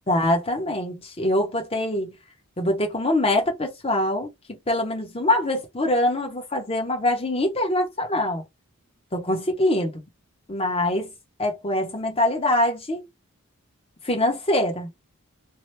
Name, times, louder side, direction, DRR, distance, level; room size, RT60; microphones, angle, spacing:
voice 1, 0.1-2.2 2.6-8.4 9.1-10.0 10.5-11.1 11.4-13.1 14.0-14.9, left 1 dB, 25° left, 0.8 m, -24 dB
2.8 x 2.0 x 3.2 m
head